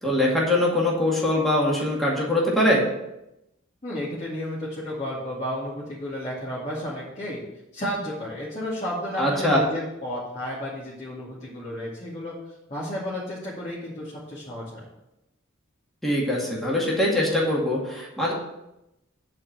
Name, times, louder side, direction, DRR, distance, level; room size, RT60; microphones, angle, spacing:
voice 1, 0.0-2.8 9.2-9.6 16.0-18.3, left 1 dB, ahead, -5 dB, 2.0 m, -22 dB
voice 2, 3.8-7.4 7.7-12.4 12.7-14.8, left 1 dB, 35° left, -8 dB, 2.4 m, -32 dB
10.0 x 4.5 x 7.5 m, 0.89 s
head